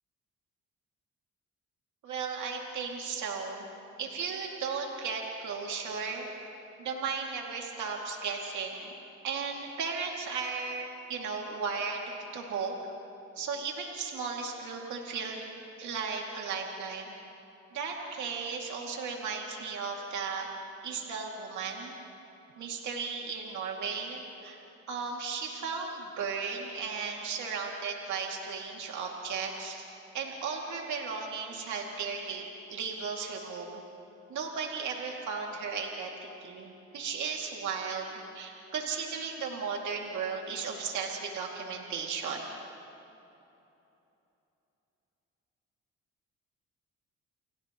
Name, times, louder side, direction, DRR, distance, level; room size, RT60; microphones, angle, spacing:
voice 1, 2.0-3.7 4.0-6.3 6.8-9.0 9.2-12.7 13.4-15.4 15.8-17.1 17.7-20.5 20.8-22.0 22.6-24.6 24.9-29.8 30.1-33.8 34.3-38.1 38.3-42.4, right 5 dB, 70° right, -1 dB, 2.4 m, -35 dB
29.5 x 29.5 x 3.0 m, 2.9 s
cardioid pair, 90°, 30 cm